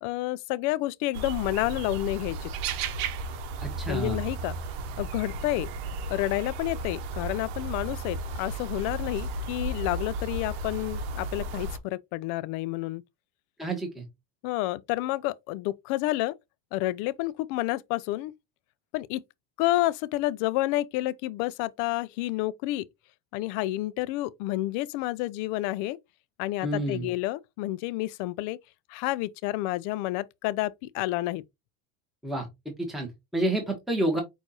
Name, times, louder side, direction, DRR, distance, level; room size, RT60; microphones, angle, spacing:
voice 1, 0.0-2.5 3.9-4.6 5.0-5.7 6.1-13.0 14.4-16.3 16.7-18.3 18.9-19.2 19.6-22.9 23.3-26.0 26.4-28.6 28.9-31.4, left 17 dB, 70° left, 0.5 m, -29 dB
sound 1, 1.1-11.8, right 3 dB, 80° right, 0.9 m, -34 dB
voice 2, 3.6-4.2 13.6-14.0 26.6-27.1 32.2-32.5 32.8-34.2, right 1 dB, ahead, 1.2 m, -29 dB
6.3 x 2.6 x 2.9 m
cardioid pair, 125°, 32 cm